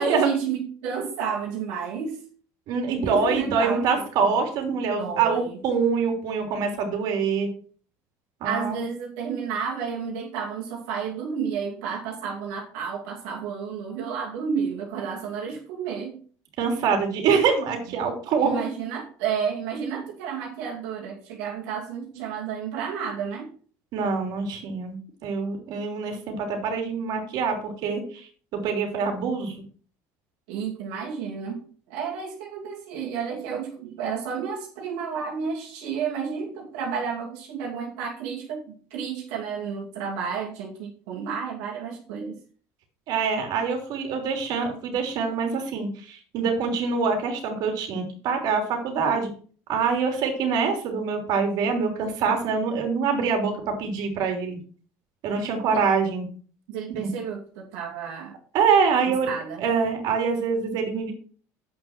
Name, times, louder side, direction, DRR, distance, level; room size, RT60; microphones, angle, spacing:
voice 1, 0.0-2.2 2.9-4.4 5.0-5.6 8.4-16.2 18.4-23.5 30.5-38.6 38.9-42.4 53.4-53.5 56.7-58.3 59.1-59.6, right 6 dB, 80° right, -3 dB, 2.6 m, -31 dB
voice 2, 2.7-7.5 8.4-8.8 16.6-18.6 23.9-25.0 25.2-29.5 43.1-49.3 49.7-54.6 55.2-56.3 56.9-57.1 58.5-59.3 59.6-61.1, right 5 dB, 60° right, 4 dB, 3.2 m, -25 dB
8.4 x 6.1 x 5.9 m, 0.43 s
supercardioid pair, 120°, 8 cm